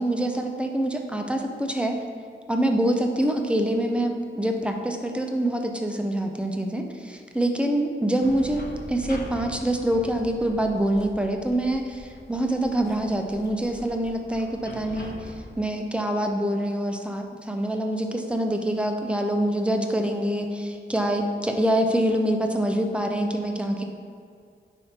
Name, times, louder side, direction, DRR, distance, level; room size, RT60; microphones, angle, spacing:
voice 1, 0.0-2.0 2.5-8.6 8.9-23.8, right 1 dB, 5° right, 3 dB, 0.7 m, -25 dB
sound 1, 8.2-15.5, left 1 dB, 55° left, 1.0 m, -42 dB
9.6 x 3.6 x 4.4 m, 2.3 s
wide cardioid pair, 80°, 21 cm